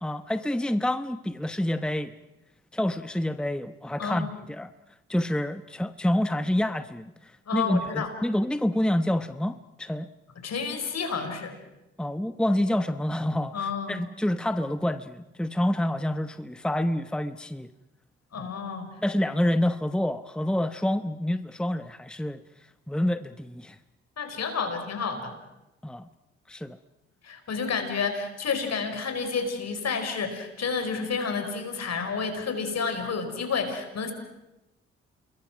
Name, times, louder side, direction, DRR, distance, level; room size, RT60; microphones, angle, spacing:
voice 1, 0.0-2.1 2.7-4.7 5.1-10.1 12.0-17.7 18.4-18.5 19.0-22.4 22.9-23.8 25.8-26.1 26.5-26.8, left 1 dB, 5° left, 12 dB, 1.0 m, -28 dB
voice 2, 4.0-4.3 7.5-8.1 10.4-11.5 13.5-14.0 18.3-18.9 24.2-25.3 27.2-34.1, left 5 dB, 60° left, 7 dB, 4.7 m, -30 dB
28.0 x 22.0 x 6.0 m, 0.95 s
hypercardioid pair, 45°, 30 cm